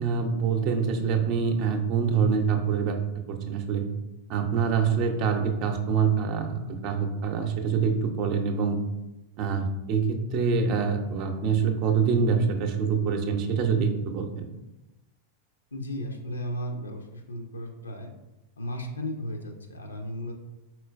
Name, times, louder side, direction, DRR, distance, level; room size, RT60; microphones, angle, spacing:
voice 1, 0.0-3.0 3.3-3.9 4.3-8.8 9.4-14.5, right 6 dB, 40° right, 6 dB, 0.6 m, -25 dB
voice 2, 15.7-18.1 18.6-20.3, equal, 75° left, 4 dB, 0.6 m, -35 dB
4.4 x 4.3 x 2.4 m, 0.97 s
figure-of-eight pair, 90°, 0 cm